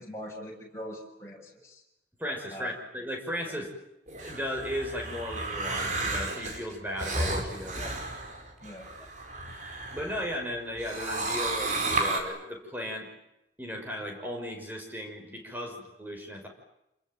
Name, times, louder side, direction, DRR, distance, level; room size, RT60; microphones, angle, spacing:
voice 1, 0.0-1.8 2.5-2.7 3.4-3.5 7.8-7.9 8.6-8.9, equal, 15° left, -1 dB, 7.0 m, -42 dB
voice 2, 2.2-3.7 4.2-7.9 9.9-13.1 13.6-16.5, equal, 10° right, 1 dB, 6.1 m, -36 dB
sound 1, 4.1-10.4 10.8-12.2, right 2 dB, 45° right, 4.9 m, -33 dB
28.5 x 21.5 x 9.3 m, 0.87 s
head